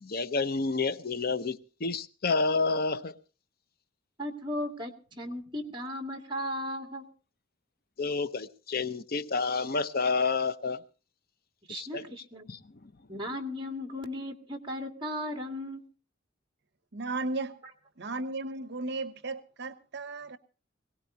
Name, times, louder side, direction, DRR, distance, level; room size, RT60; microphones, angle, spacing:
voice 1, 0.0-3.1 8.0-10.8 11.7-12.1 12.5-12.6, left 4 dB, 50° left, 0.7 m, -29 dB
voice 2, 4.2-7.1 11.7-12.5 13.1-15.8, left 1 dB, 25° right, 2.2 m, -36 dB
voice 3, 16.9-17.6 18.0-20.4, right 3 dB, 60° right, 0.9 m, -35 dB
22.0 x 18.0 x 2.7 m
head